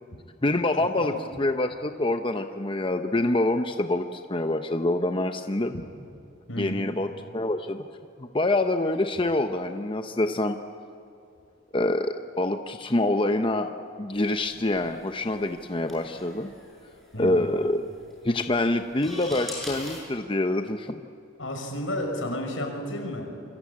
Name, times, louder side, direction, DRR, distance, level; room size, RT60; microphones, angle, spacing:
voice 1, 0.4-5.7 6.6-7.9 8.2-10.6 11.7-13.7 14.0-16.5 17.2-17.9 18.2-21.0, left 2 dB, 25° left, 7 dB, 0.8 m, -26 dB
voice 2, 6.5-6.9 17.1-17.5 21.4-23.3, left 1 dB, 85° left, 3 dB, 5.9 m, -32 dB
sound 1, 14.1-20.0, left 1 dB, ahead, 7.3 m, -43 dB
28.0 x 23.5 x 8.6 m, 2.6 s
head